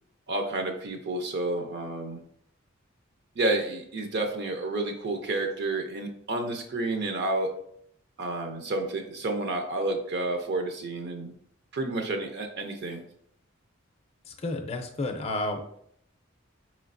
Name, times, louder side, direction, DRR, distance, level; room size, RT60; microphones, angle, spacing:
voice 1, 0.3-2.2 3.4-7.5 8.2-11.3 11.7-13.0, right 2 dB, 55° right, 4 dB, 0.6 m, -30 dB
voice 2, 14.3-15.6, left 2 dB, 30° left, 4 dB, 0.5 m, -31 dB
4.7 x 3.1 x 2.6 m, 0.68 s
head